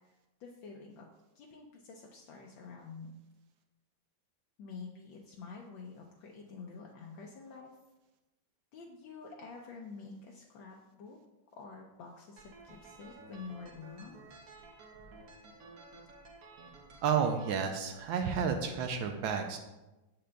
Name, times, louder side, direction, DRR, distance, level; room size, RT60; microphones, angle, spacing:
voice 1, 0.4-1.1 1.4-3.2 4.6-7.7 8.7-11.2 11.6-14.2, left 4 dB, 75° left, -1 dB, 1.4 m, -48 dB
sound 1, 12.4-17.5, right 3 dB, 60° right, 1.1 m, -53 dB
voice 2, 17.0-19.6, right 6 dB, 80° right, 4 dB, 1.3 m, -31 dB
7.5 x 6.7 x 2.2 m, 1.0 s
omnidirectional pair, 2.1 m